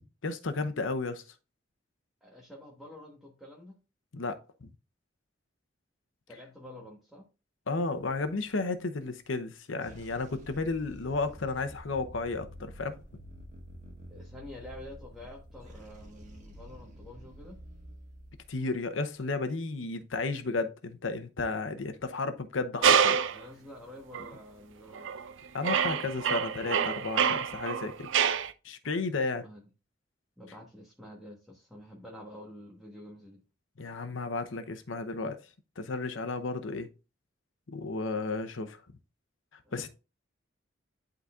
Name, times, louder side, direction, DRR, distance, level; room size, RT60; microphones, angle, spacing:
voice 1, 0.2-1.2 4.1-4.7 7.7-13.0 18.5-23.2 25.5-28.1 28.6-29.4 33.8-35.4 35.8-36.9 37.7-38.8 39.7-39.9, left 3 dB, 85° left, 0.8 m, -33 dB
voice 2, 2.2-3.7 6.3-7.3 14.1-17.6 23.3-25.1 28.8-29.7 30.4-33.4 39.6-39.9, left 1 dB, ahead, 1.3 m, -48 dB
sound 1, 8.0-8.7 9.7-19.0, equal, 40° right, 1.5 m, -49 dB
sound 2, 22.8-23.4 24.1-24.3 24.9-25.3 25.6-28.5, right 7 dB, 75° right, 0.5 m, -26 dB
11.0 x 3.9 x 2.4 m
head